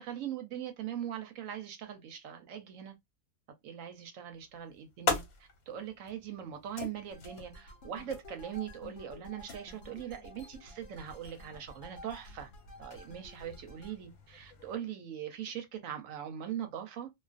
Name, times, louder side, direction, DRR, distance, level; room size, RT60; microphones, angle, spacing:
voice 1, 0.0-2.9 3.6-12.5 12.8-17.1, right 9 dB, 70° right, 0.9 m, -41 dB
sound 1, 4.3-14.8, left 3 dB, 85° left, 1.2 m, -42 dB
sound 2, 7.1-14.0, left 1 dB, 65° left, 0.9 m, -52 dB
2.4 x 2.4 x 2.4 m
omnidirectional pair, 1.5 m